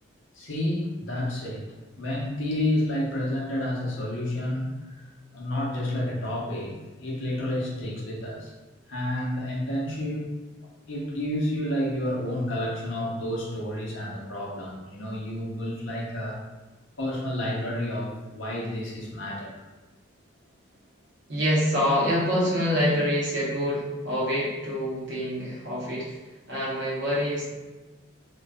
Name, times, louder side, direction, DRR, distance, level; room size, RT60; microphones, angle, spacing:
voice 1, 0.3-1.7 2.0-5.1 5.3-8.5 8.9-10.3 10.9-16.4 17.0-19.6, left 1 dB, 70° left, -4 dB, 0.6 m, -30 dB
voice 2, 21.3-26.1 26.5-27.5, equal, 60° right, -6 dB, 0.8 m, -26 dB
2.5 x 2.2 x 2.2 m, 1.2 s
head